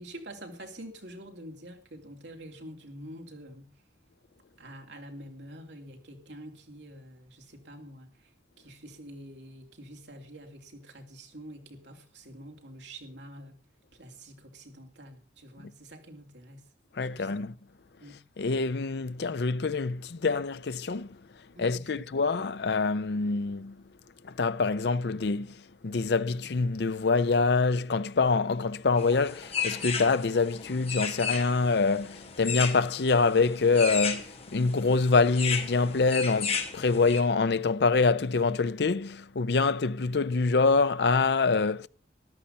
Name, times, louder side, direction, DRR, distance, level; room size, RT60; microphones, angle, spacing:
voice 1, 0.0-3.7 4.6-8.3 8.6-13.6 13.9-16.6 17.0-17.5 18.0-18.2 21.5-22.1, right 1 dB, 70° right, 3.2 m, -46 dB
voice 2, 17.0-17.5 18.4-21.2 21.6-23.8 24.2-41.9, left 4 dB, 60° left, 0.5 m, -25 dB
sound 1, 29.0-37.2, left 6 dB, 35° left, 2.2 m, -34 dB
14.0 x 11.5 x 5.5 m
head